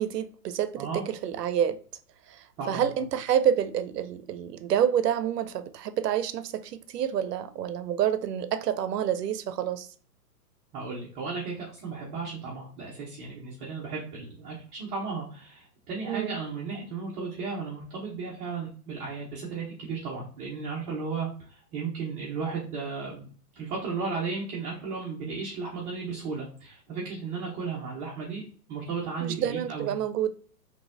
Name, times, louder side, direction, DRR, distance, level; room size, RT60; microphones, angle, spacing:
voice 1, 0.0-1.8 2.3-2.4 2.7-9.9 16.1-16.4 29.2-30.3, right 9 dB, 75° right, 0.6 m, -28 dB
voice 2, 2.6-2.9 10.7-23.3 23.6-28.4 28.7-29.9, right 4 dB, 15° right, 0.5 m, -35 dB
3.8 x 2.8 x 2.5 m
hypercardioid pair, 130°, 48 cm